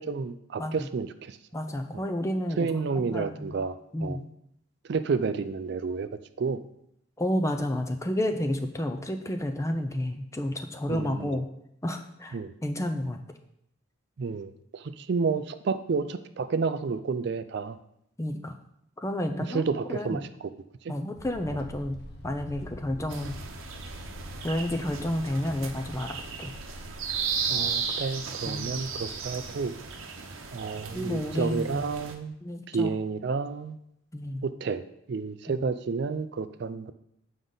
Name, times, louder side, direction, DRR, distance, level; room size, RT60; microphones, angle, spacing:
voice 1, 0.0-1.4 2.6-4.2 4.9-6.1 6.4-6.6 10.9-11.4 12.3-12.5 14.2-17.8 19.5-20.3 27.5-29.7 30.5-32.4 32.7-33.8 34.4-36.9, right 4 dB, 55° right, 11 dB, 0.4 m, -30 dB
voice 2, 1.5-2.7 3.0-3.6 3.9-4.3 7.2-11.5 11.8-13.2 18.2-18.5 19.0-19.6 19.9-20.2 20.9-22.0 22.2-23.3 24.4-26.5 28.4-28.7 30.9-31.8 32.4-32.9 34.1-34.4 35.5-35.6, left 1 dB, 15° left, 5 dB, 0.5 m, -31 dB
sound 1, 21.1-29.7, left 1 dB, 50° left, 0.8 m, -46 dB
sound 2, 23.1-32.1, right 6 dB, 85° right, 0.8 m, -35 dB
8.0 x 5.2 x 3.9 m, 0.77 s
head